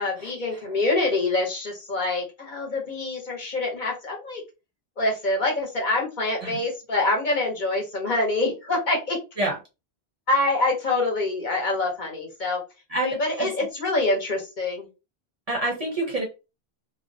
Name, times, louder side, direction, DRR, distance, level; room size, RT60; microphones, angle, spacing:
voice 1, 0.0-4.4 5.0-9.2 10.3-12.6 13.0-14.9, left 2 dB, 50° left, 0 dB, 0.9 m, -25 dB
voice 2, 12.9-13.5 15.5-16.2, right 2 dB, 45° right, 0 dB, 0.6 m, -27 dB
2.4 x 2.1 x 2.6 m, 0.28 s
omnidirectional pair, 1.0 m